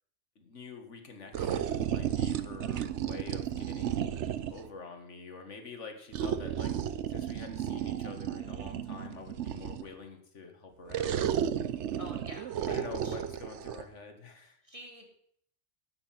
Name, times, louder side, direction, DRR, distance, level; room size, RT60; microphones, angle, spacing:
voice 1, 0.4-4.2 4.5-6.7 7.1-11.4 12.7-14.6, left 4 dB, 85° left, 5 dB, 2.1 m, -46 dB
sound 1, 1.3-4.7 6.1-9.9 10.9-13.8, right 9 dB, 75° right, 1.0 m, -33 dB
voice 2, 12.0-12.8 13.0-13.1 14.7-15.2, equal, 30° right, 1 dB, 2.7 m, -47 dB
12.0 x 9.4 x 5.9 m, 0.65 s
omnidirectional pair, 1.2 m